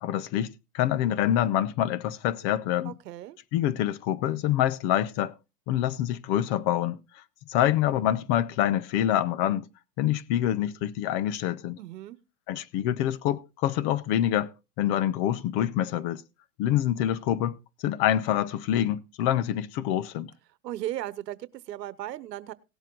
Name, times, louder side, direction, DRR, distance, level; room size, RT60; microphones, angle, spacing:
voice 1, 0.0-2.9 3.5-5.3 5.7-7.0 7.5-9.7 10.0-11.8 12.5-14.5 14.8-16.2 16.6-17.6 17.8-20.3, left 11 dB, 35° left, 0.8 m, -26 dB
voice 2, 2.8-3.4 11.8-12.2 20.6-22.5, right 13 dB, 90° right, 1.1 m, -36 dB
17.5 x 7.5 x 3.9 m
supercardioid pair, 145°, 48 cm